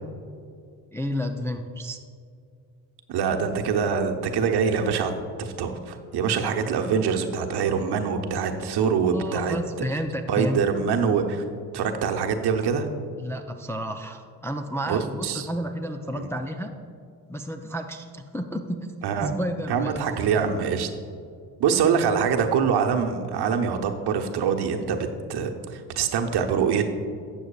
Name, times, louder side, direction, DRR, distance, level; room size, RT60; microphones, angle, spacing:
voice 1, 0.9-2.0 9.1-10.6 13.2-16.8 17.3-18.9 19.2-20.0, equal, 5° left, 4 dB, 0.4 m, -31 dB
voice 2, 3.1-9.6 10.3-11.4 11.7-12.9 14.9-15.5 16.1-16.3 19.0-19.3 19.7-20.9 21.6-26.8, right 6 dB, 55° right, 4 dB, 1.0 m, -24 dB
12.5 x 7.9 x 2.4 m, 2.3 s
hypercardioid pair, 55°, 47 cm